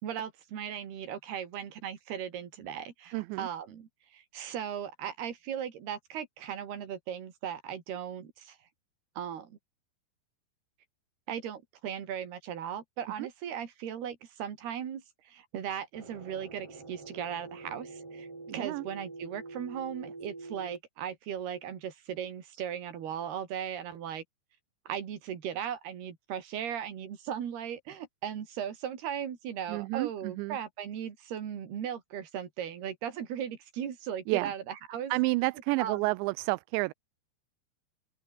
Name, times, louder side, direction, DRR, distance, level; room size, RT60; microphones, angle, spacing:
voice 1, 0.0-8.6 9.2-9.6 11.3-18.3 18.5-24.2 24.9-35.1 35.8-36.1, right 9 dB, 65° right, 4.7 m, -37 dB
voice 2, 3.1-3.5 13.2-13.3 18.5-18.8 29.7-30.6 34.3-34.5 35.1-36.9, right 23 dB, 85° right, 2.8 m, -30 dB
sound 1, 15.9-20.8, right 3 dB, 30° right, 7.4 m, -45 dB
open air
omnidirectional pair, 5.1 m